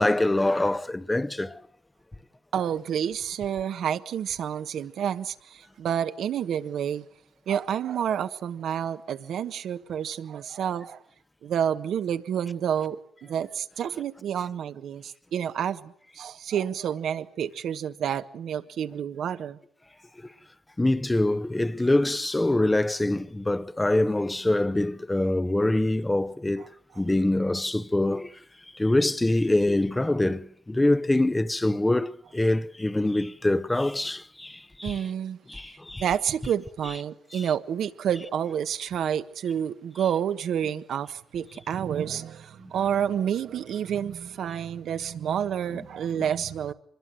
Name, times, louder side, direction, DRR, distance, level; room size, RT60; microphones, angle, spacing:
voice 1, 0.0-1.6 20.8-26.7 27.0-28.3 28.7-35.0 35.5-36.0 37.3-37.4, left 1 dB, 15° left, 0.9 m, -24 dB
voice 2, 2.5-7.0 7.5-11.0 11.4-19.6 34.8-35.4 36.0-46.7, right 9 dB, 70° right, 1.4 m, -29 dB
25.5 x 21.5 x 7.8 m
cardioid pair, 90°, 0 cm